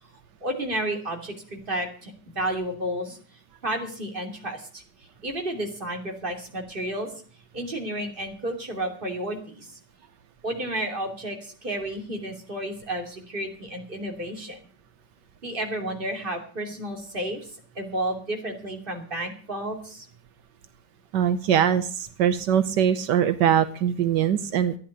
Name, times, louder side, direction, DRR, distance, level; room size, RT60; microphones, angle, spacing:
voice 1, 0.4-3.2 3.6-4.8 5.2-7.1 7.5-9.8 10.4-14.6 15.4-20.1, right 1 dB, 30° right, 3 dB, 3.1 m, -31 dB
voice 2, 21.1-24.8, right 9 dB, 80° right, 10 dB, 1.5 m, -22 dB
14.0 x 10.0 x 6.6 m, 0.44 s
omnidirectional pair, 1.9 m